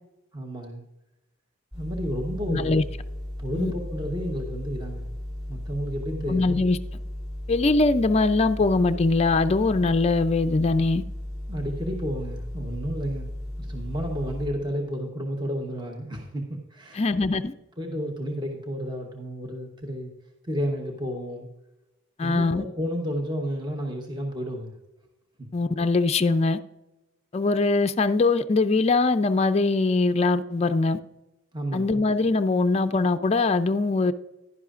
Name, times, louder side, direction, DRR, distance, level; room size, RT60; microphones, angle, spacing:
voice 1, 0.3-0.8 1.7-2.9 3.4-5.1 5.5-6.5 11.5-13.3 13.6-17.1 17.8-20.1 20.4-21.5 22.2-24.7 31.5-32.0, equal, 20° right, 1.0 m, -31 dB
sound 1, 1.7-14.5, left 1 dB, 5° right, 3.8 m, -35 dB
voice 2, 2.5-2.8 3.6-3.7 6.3-6.8 7.5-11.0 16.9-17.5 22.2-22.6 25.5-26.6 27.3-31.0 31.7-34.1, left 3 dB, 30° left, 0.4 m, -22 dB
11.0 x 10.5 x 2.5 m
head